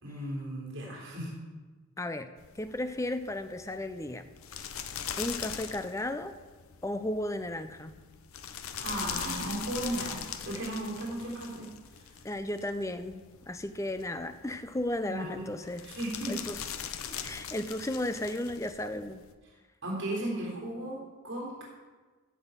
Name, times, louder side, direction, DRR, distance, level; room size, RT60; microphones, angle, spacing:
voice 1, 0.0-1.3 8.8-11.7 11.9-12.1 15.0-15.4 15.8-16.3 19.8-21.6, right 1 dB, 55° right, -3 dB, 3.3 m, -36 dB
voice 2, 2.0-2.3 2.6-4.3 5.2-6.3 6.8-8.0 12.2-15.9 16.3-16.6 17.2-19.2, left 1 dB, 15° left, 10 dB, 0.5 m, -34 dB
sound 1, 2.4-19.3, left 8 dB, 70° left, 0.7 m, -42 dB
15.5 x 6.2 x 5.3 m, 1.3 s
head